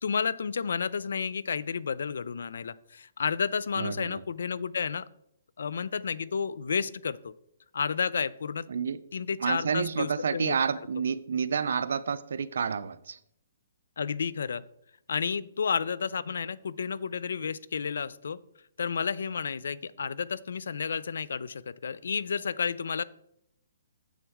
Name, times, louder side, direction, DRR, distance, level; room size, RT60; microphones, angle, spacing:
voice 1, 0.0-5.0 5.6-7.3 7.7-8.7 9.1-10.5 14.0-14.6 15.1-18.4 18.8-23.0, left 6 dB, 75° left, 0.4 m, -31 dB
voice 2, 3.8-4.2 8.7-9.0 9.4-13.2, right 6 dB, 70° right, 0.5 m, -29 dB
7.3 x 7.1 x 3.5 m
hypercardioid pair, 150°, 0 cm